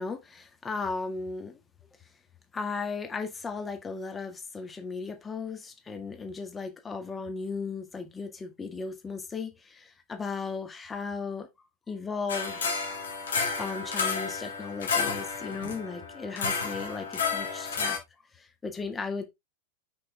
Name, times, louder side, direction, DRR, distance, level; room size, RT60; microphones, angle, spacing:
voice 1, 0.0-1.6 2.5-11.5 11.9-12.7 13.6-18.0 18.3-19.3, left 4 dB, 15° left, 1.9 m, -36 dB
sound 1, 12.3-18.0, left 5 dB, 65° left, 2.5 m, -31 dB
6.3 x 6.1 x 3.6 m
figure-of-eight pair, 90°, 0 cm